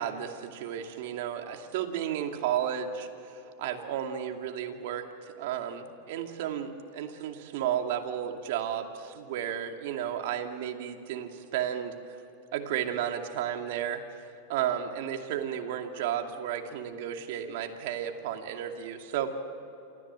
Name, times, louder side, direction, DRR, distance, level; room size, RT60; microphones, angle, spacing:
voice 1, 0.0-3.1 3.6-5.0 5.4-11.9 12.5-14.0 14.5-19.3, right 9 dB, 65° right, 4 dB, 2.4 m, -33 dB
28.0 x 14.5 x 7.6 m, 2.9 s
hypercardioid pair, 110°, 0 cm